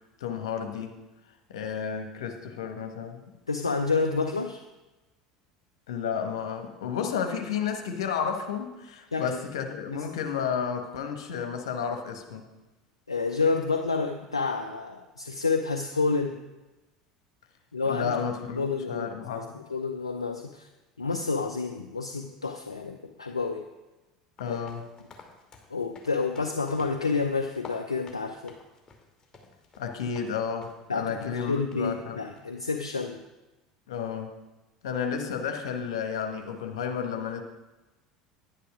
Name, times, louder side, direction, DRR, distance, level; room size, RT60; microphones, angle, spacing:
voice 1, 0.2-0.9 1.5-3.2 5.9-12.5 17.8-18.6 18.9-19.6 24.4-24.8 29.8-32.2 33.9-34.4 34.8-37.4, left 7 dB, 70° left, 4 dB, 1.4 m, -32 dB
voice 2, 3.5-4.6 9.1-9.3 9.9-10.1 13.1-16.4 17.7-18.2 18.6-20.7 21.0-23.6 24.5-24.6 25.7-28.5 30.9-33.2, left 4 dB, 85° left, 5 dB, 0.6 m, -29 dB
sound 1, 24.4-30.3 30.6-30.9 31.2-31.3 31.7-31.8 32.4-32.6, left 4 dB, 25° left, 2.5 m, -51 dB
10.5 x 10.0 x 4.9 m, 1.1 s
figure-of-eight pair, 70°, 3 cm